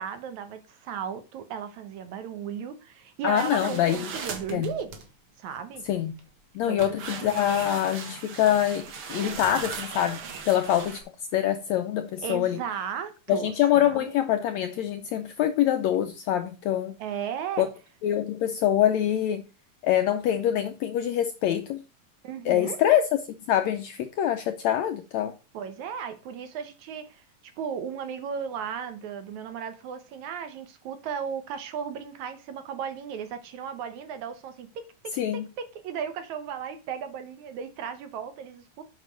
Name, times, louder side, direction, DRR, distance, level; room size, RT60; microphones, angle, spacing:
voice 1, 0.0-4.9 5.4-5.8 6.7-6.8 7.2-7.3 12.2-14.2 17.0-17.7 22.2-22.8 25.5-38.8, right 7 dB, 70° right, 2.1 m, -35 dB
voice 2, 3.2-4.1 4.5-4.7 5.8-6.1 6.5-10.2 10.5-11.0 11.3-12.6 13.3-16.9 17.6-17.7 18.0-19.4 19.8-21.8 22.4-23.1 23.5-25.3 35.1-35.5, left 11 dB, 80° left, 1.6 m, -25 dB
sound 1, 3.4-5.1 5.7-6.2 6.8-11.0, right 6 dB, 50° right, 1.9 m, -38 dB
8.5 x 5.9 x 5.1 m
omnidirectional pair, 3.8 m